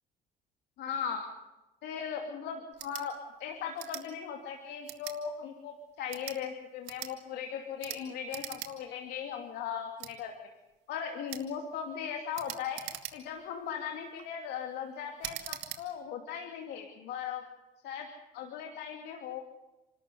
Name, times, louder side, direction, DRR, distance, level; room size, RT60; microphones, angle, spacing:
voice 1, 0.8-1.3 1.8-3.1 3.4-10.3 10.9-12.8 13.1-17.4 17.8-18.1 18.3-19.4, left 7 dB, 80° left, 3 dB, 2.8 m, -38 dB
sound 1, 2.7-3.1 3.8-4.1 4.9-5.2 6.0-6.4 6.8-7.1 7.8-8.0 8.3-8.7 9.1-9.2 10.0-10.1 11.3-11.5 12.3-13.4 14.0-14.3 15.2-15.8, right 14 dB, 85° right, 2.6 m, -41 dB
28.0 x 13.5 x 9.7 m, 1.0 s
cardioid pair, 110°, 17 cm